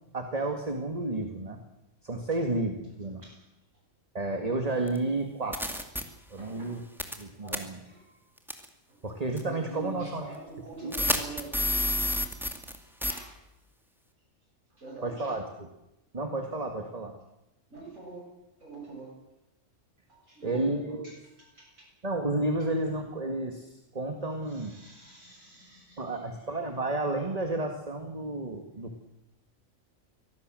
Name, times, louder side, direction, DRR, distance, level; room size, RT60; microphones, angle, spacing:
voice 1, 0.1-1.6 2.0-3.2 4.1-5.6 6.3-6.8 7.2-7.8 9.0-10.3 10.8-11.2 15.0-15.4 16.1-17.1 20.4-21.1 22.0-24.7 26.0-29.0, right 2 dB, 30° right, 4 dB, 2.1 m, -31 dB
voice 2, 3.0-3.4 6.4-6.8 7.3-8.3 8.9-9.0 9.4-12.0 13.1-13.3 14.8-15.4 17.7-18.3 18.6-19.1 20.1-21.9 24.4-26.6, right 3 dB, 85° right, -6 dB, 8.4 m, -46 dB
sound 1, 4.9-5.0 5.5-6.0 7.0-7.2 7.5-7.6 8.5-8.7 9.4-9.5 10.9-12.8 13.0-13.2, left 1 dB, ahead, 2.3 m, -28 dB
24.5 x 17.5 x 7.7 m, 0.90 s
omnidirectional pair, 1.3 m